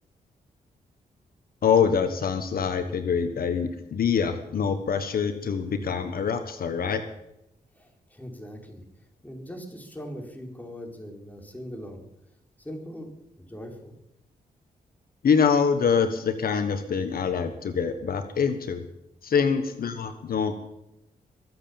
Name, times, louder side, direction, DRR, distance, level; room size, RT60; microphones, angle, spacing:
voice 1, 1.6-7.0 15.2-18.8 19.2-20.5, left 6 dB, 70° left, 8 dB, 1.4 m, -25 dB
voice 2, 7.7-8.8 9.2-12.0 12.6-13.9, equal, 10° left, 2 dB, 4.5 m, -40 dB
23.0 x 8.0 x 7.2 m, 0.84 s
cardioid pair, 70°, 16 cm